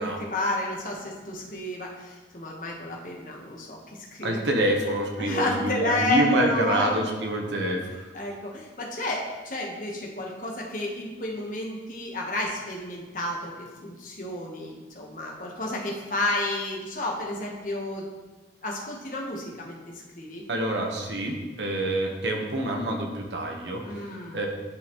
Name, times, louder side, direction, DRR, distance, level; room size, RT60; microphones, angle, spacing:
voice 1, 0.0-3.8 4.1-4.4 5.2-6.9 8.1-18.1 18.6-19.8 20.1-20.4 23.8-24.4, left 2 dB, 45° left, -1 dB, 1.2 m, -31 dB
voice 2, 4.2-8.0 20.5-24.1 24.3-24.5, right 1 dB, 80° right, 1 dB, 1.1 m, -27 dB
11.0 x 4.1 x 3.1 m, 1.2 s
head